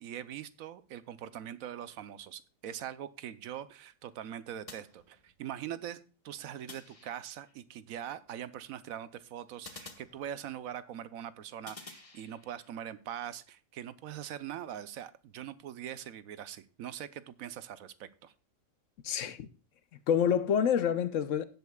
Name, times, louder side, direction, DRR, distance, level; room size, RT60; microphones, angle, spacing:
voice 1, 0.0-6.0 6.2-18.3, right 10 dB, 90° right, 1.1 m, -42 dB
sound 1, 4.7-5.6 6.7-7.6 9.6-10.8 11.7-12.7, left 3 dB, 25° left, 1.2 m, -51 dB
voice 2, 19.0-19.5 20.1-21.4, left 8 dB, 70° left, 1.0 m, -27 dB
17.0 x 8.0 x 2.3 m
omnidirectional pair, 1.4 m